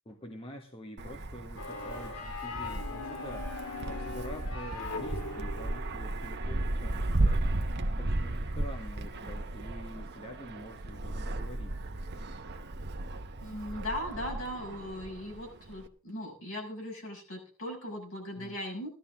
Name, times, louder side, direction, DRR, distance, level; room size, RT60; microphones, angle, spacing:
voice 1, 0.0-11.8 18.4-18.6, equal, 25° left, 3 dB, 1.6 m, -46 dB
Wind, 1.0-15.9, right 2 dB, 50° right, 1.2 m, -35 dB
sound 1, 1.6-6.3, left 3 dB, 85° left, 2.7 m, -40 dB
voice 2, 13.4-18.9, left 1 dB, 65° left, 0 dB, 6.2 m, -38 dB
16.0 x 12.5 x 3.7 m, 0.36 s
head